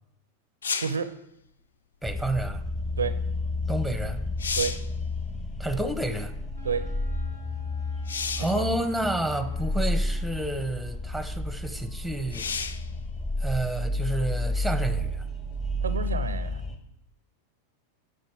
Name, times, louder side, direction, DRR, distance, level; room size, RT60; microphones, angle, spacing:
sound 1, 0.6-1.1 3.7-3.8 4.2-4.9 8.1-8.6 9.6-9.7 12.3-12.9 16.5-16.6, left 5 dB, 70° left, 0.5 m, -31 dB
voice 1, 0.8-1.1 3.0-3.2 4.6-4.8 6.6-6.9 8.4-8.6 15.8-16.6, right 6 dB, 70° right, 13 dB, 0.5 m, -30 dB
sound 2, 2.0-16.8, left 1 dB, 20° left, 1.1 m, -31 dB
voice 2, 2.0-2.6 3.7-4.2 5.6-6.3 8.4-12.5 13.4-15.2, right 1 dB, ahead, 10 dB, 0.8 m, -30 dB
Wind instrument woodwind instrument, 5.8-10.6, right 1 dB, 85° left, 2.5 m, -53 dB
9.4 x 5.4 x 4.6 m, 0.79 s
figure-of-eight pair, 90°, 0 cm